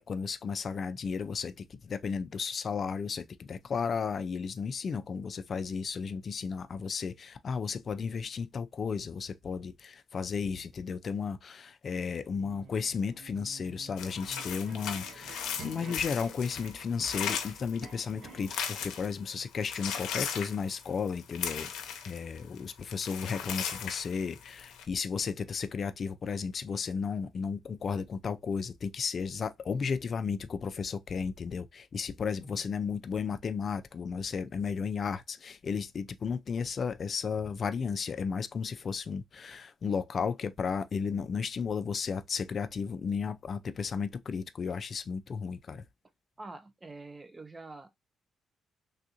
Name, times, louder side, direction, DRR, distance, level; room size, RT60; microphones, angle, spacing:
voice 1, 0.0-21.7 22.1-45.8, left 6 dB, 45° left, 0.3 m, -34 dB
sound 1, 12.3-18.6, right 4 dB, 75° right, 1.0 m, -50 dB
sound 2, 14.0-19.2 19.5-22.6 22.8-24.8, left 8 dB, 85° left, 0.6 m, -37 dB
voice 2, 46.4-47.9, right 3 dB, 20° right, 0.5 m, -46 dB
3.4 x 2.5 x 2.7 m
cardioid pair, 90°, 0 cm